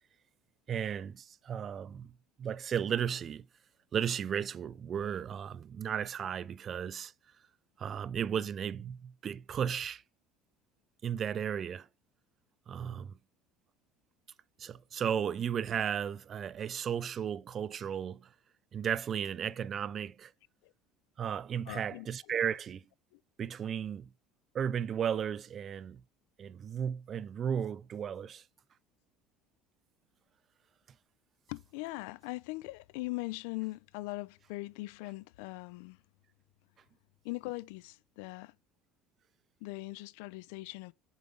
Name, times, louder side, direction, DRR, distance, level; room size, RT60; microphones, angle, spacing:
voice 1, 0.7-2.1 2.4-3.5 3.9-7.1 7.8-10.0 11.0-11.9 12.7-13.1 14.6-18.3 18.7-20.3 21.2-22.8 23.4-24.1 24.5-26.0 26.4-28.4, right 8 dB, 35° right, 0.3 m, -34 dB
voice 2, 21.7-22.1 31.5-36.0 37.2-38.5 39.6-40.9, left 22 dB, 80° left, 0.3 m, -40 dB
7.1 x 5.0 x 3.7 m
supercardioid pair, 115°, 0 cm